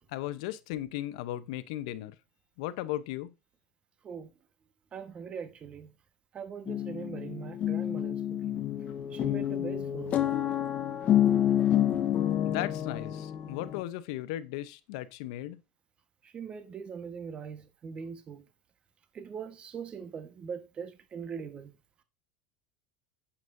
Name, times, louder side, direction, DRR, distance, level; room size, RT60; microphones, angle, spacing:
voice 1, 0.1-2.2 2.6-3.3 12.4-15.6, left 14 dB, 70° left, 0.8 m, -36 dB
voice 2, 4.9-5.9 6.3-8.6 9.1-10.6 16.2-18.4 19.1-21.7, right 6 dB, 35° right, 1.3 m, -41 dB
sound 1, 6.7-13.8, left 11 dB, 45° left, 1.2 m, -28 dB
9.2 x 7.3 x 2.7 m
hypercardioid pair, 95°, 3 cm